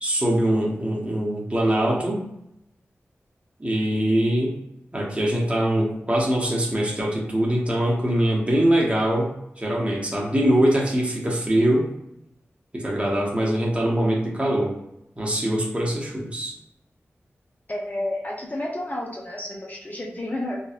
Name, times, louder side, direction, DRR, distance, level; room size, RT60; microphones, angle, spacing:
voice 1, 0.0-2.3 3.6-4.6 4.9-11.9 12.7-14.8 15.2-16.5, right 1 dB, 25° right, -3 dB, 0.9 m, -23 dB
voice 2, 17.7-20.6, left 1 dB, 35° left, -1 dB, 0.6 m, -30 dB
2.7 x 2.2 x 2.4 m, 0.81 s
cardioid pair, 50°, 5 cm